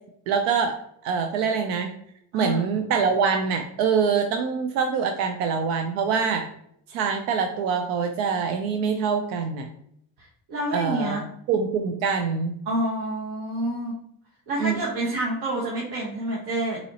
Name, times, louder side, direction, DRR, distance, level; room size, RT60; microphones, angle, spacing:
voice 1, 0.3-0.8 1.0-1.9 2.3-6.5 6.9-9.7 10.7-11.2 11.5-12.6 14.6-14.8, right 6 dB, 90° right, 5 dB, 0.5 m, -24 dB
voice 2, 10.2-11.2 12.7-14.0 14.5-16.8, right 1 dB, 70° right, -4 dB, 1.1 m, -28 dB
4.0 x 2.9 x 2.7 m, 0.70 s
supercardioid pair, 85°, 40 cm